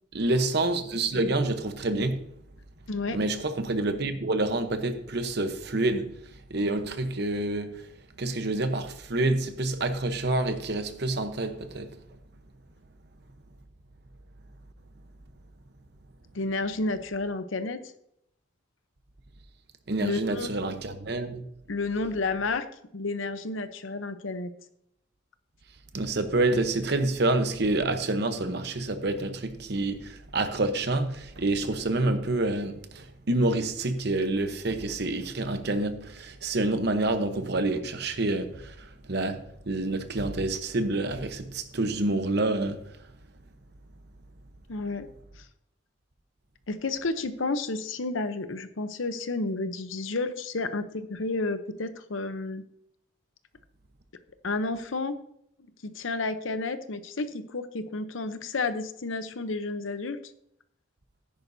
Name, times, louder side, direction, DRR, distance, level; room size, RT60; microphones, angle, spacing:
voice 1, 0.1-2.2 3.1-6.1 6.5-7.8 8.2-12.0 19.9-21.4 25.9-39.4 39.7-42.8, right 2 dB, 55° right, 0.9 m, -28 dB
voice 2, 2.9-3.2 16.3-17.8 20.0-20.5 21.7-22.7 22.9-24.5 44.7-45.1 45.4-45.5 46.7-52.6 54.4-55.2 55.8-60.2, left 3 dB, 75° left, 0.8 m, -31 dB
13.5 x 10.5 x 2.7 m
head